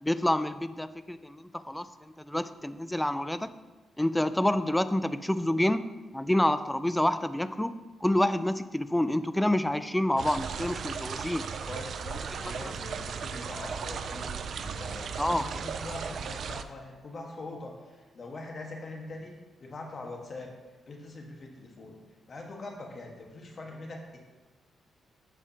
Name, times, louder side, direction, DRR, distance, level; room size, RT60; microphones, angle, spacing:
voice 1, 0.0-1.9 2.2-3.5 4.0-7.7 8.0-11.5 12.6-12.7 15.2-15.4, left 1 dB, 5° left, 13 dB, 0.4 m, -28 dB
sound 1, 10.2-16.6, right 6 dB, 65° right, 0.4 m, -36 dB
voice 2, 11.6-19.3 19.6-20.5 20.9-22.0 22.3-24.0, left 2 dB, 45° left, 1 dB, 1.5 m, -42 dB
14.5 x 4.9 x 2.9 m, 1.2 s
cardioid pair, 85°, 0 cm